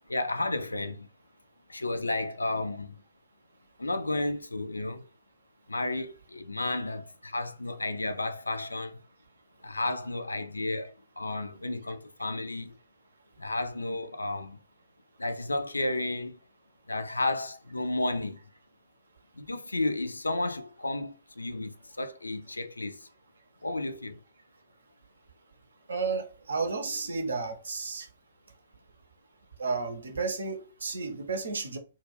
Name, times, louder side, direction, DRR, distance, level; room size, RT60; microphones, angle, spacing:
voice 1, 0.1-1.1 1.7-2.9 3.8-5.0 5.7-9.0 9.6-12.8 13.4-14.6 15.2-16.4 16.9-18.4 19.4-23.1 23.6-24.2, left 2 dB, 75° left, 0.3 m, -32 dB
voice 2, 25.9-28.1 29.6-31.8, right 4 dB, 65° right, 0.6 m, -32 dB
2.2 x 2.2 x 3.2 m
figure-of-eight pair, 120°, 0 cm